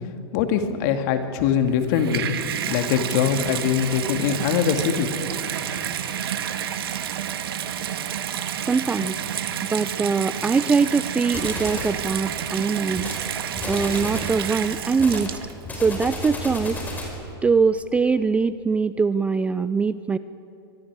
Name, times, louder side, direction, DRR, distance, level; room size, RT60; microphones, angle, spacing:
voice 1, 0.3-2.2 2.7-5.1, left 8 dB, 50° left, 6 dB, 2.2 m, -22 dB
Water tap faucet / Bathtub (filling or washing), 1.7-15.7 16.5-16.6, right 9 dB, 75° right, 1.6 m, -30 dB
voice 2, 8.6-9.2 9.6-13.0 13.7-15.4 15.7-16.8 17.4-20.2, right 5 dB, 10° right, 14 dB, 0.4 m, -22 dB
sound 1, 11.3-12.0 12.9-13.2 13.6-14.4 15.0-17.2, left 1 dB, 15° left, 4.9 m, -32 dB
24.5 x 23.5 x 4.9 m, 2.7 s
hypercardioid pair, 125°, 13 cm